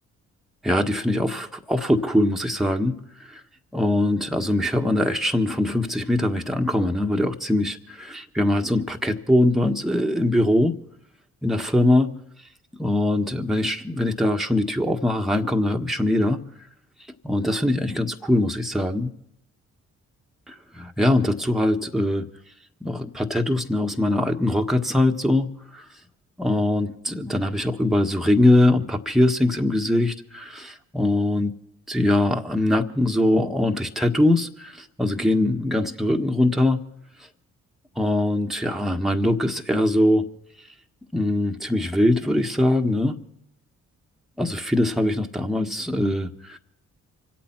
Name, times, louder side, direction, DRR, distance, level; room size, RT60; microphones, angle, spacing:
voice 1, 0.6-3.4 3.7-10.8 11.4-12.1 12.8-16.4 17.2-19.1 20.5-22.2 22.8-25.8 26.4-31.5 31.9-36.8 38.0-40.3 41.1-43.2 44.4-46.6, left 1 dB, ahead, 3 dB, 1.5 m, -22 dB
25.5 x 8.6 x 5.9 m, 0.74 s
hypercardioid pair, 45°, 37 cm